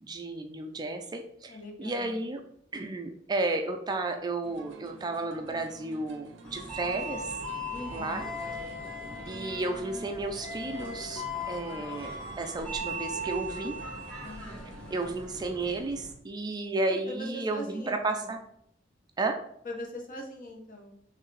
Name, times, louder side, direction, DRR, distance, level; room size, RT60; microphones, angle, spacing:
voice 1, 0.0-2.4 2.7-7.3 7.9-8.2 9.3-13.8 14.9-18.4 19.2-19.4, right 2 dB, 20° right, 5 dB, 0.3 m, -33 dB
voice 2, 1.5-2.2 7.7-8.3 14.2-14.7 16.9-18.3 19.6-20.9, left 1 dB, 45° left, 2 dB, 0.9 m, -41 dB
sound 1, 4.4-15.8, right 2 dB, 70° right, 0.6 m, -49 dB
sound 2, 6.4-16.1, equal, 5° left, 0.9 m, -38 dB
4.5 x 3.2 x 3.2 m, 0.69 s
head